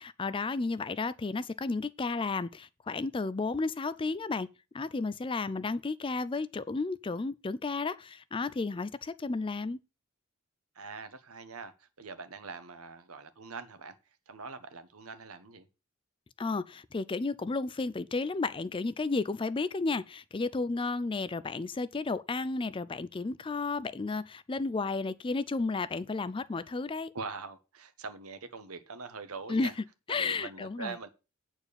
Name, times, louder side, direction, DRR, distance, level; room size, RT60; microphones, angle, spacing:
voice 1, 0.0-4.5 4.7-9.8 16.4-27.1 29.5-29.7 30.1-31.0, left 3 dB, 25° left, 0.4 m, -32 dB
voice 2, 10.7-13.9 14.3-15.7 27.1-29.7 30.1-31.1, right 4 dB, 90° right, 1.2 m, -43 dB
8.7 x 4.5 x 6.8 m
head